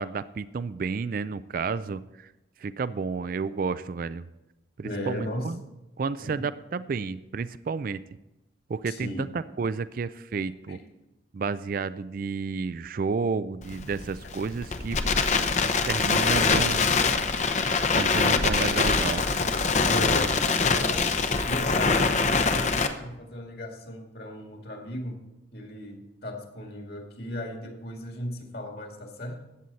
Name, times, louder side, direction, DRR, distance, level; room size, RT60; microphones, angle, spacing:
voice 1, 0.0-2.3 2.6-4.3 4.8-5.6 6.0-8.0 8.7-10.8 11.3-15.0 15.8-16.9 17.9-19.2, right 4 dB, 45° right, 15 dB, 0.3 m, -31 dB
voice 2, 4.8-5.5 6.2-6.4 8.9-9.3 10.7-10.8 19.9-21.1 21.5-25.2 25.5-29.4, left 1 dB, 55° left, 2 dB, 2.1 m, -36 dB
Crackle, 13.6-22.9, left 4 dB, 35° left, 0.8 m, -24 dB
14.0 x 9.1 x 4.1 m, 0.98 s
head